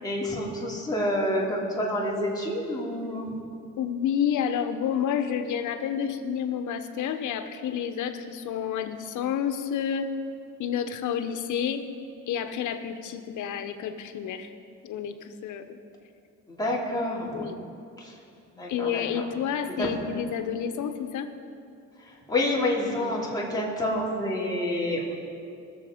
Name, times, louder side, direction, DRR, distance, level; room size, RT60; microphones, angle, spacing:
voice 1, 0.0-3.3 16.5-17.4 18.6-19.0 22.3-25.1, left 1 dB, 15° left, -5 dB, 3.0 m, -28 dB
voice 2, 3.8-10.1 10.6-11.8 12.3-14.5 14.8-15.8 17.3-17.6 18.7-21.3, left 8 dB, 80° left, 8 dB, 1.0 m, -29 dB
20.0 x 7.1 x 5.1 m, 2.5 s
cardioid pair, 90°, 30 cm